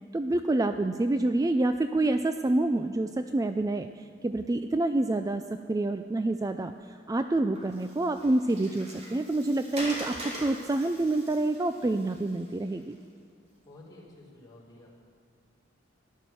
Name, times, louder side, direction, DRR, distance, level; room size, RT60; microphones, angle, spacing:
voice 1, 0.1-5.4 5.7-13.0, right 2 dB, 20° right, 9 dB, 0.3 m, -27 dB
Water, 7.5-12.9, equal, 35° right, 3.1 m, -42 dB
voice 2, 13.6-14.9, left 2 dB, 20° left, -6 dB, 3.6 m, -51 dB
14.5 x 11.0 x 6.9 m, 2.3 s
head